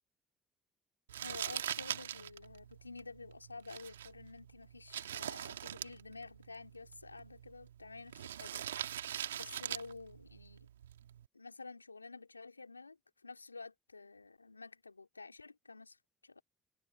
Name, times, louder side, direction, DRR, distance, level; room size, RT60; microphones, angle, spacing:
Crumpling crinkling, 1.1-11.3, right 10 dB, 80° right, 2.3 m, -43 dB
voice 1, 1.2-8.9 9.3-10.7 11.3-16.0 16.2-16.4, left 3 dB, 90° left, 3.4 m, -51 dB
figure-of-eight pair, 45°, 0 cm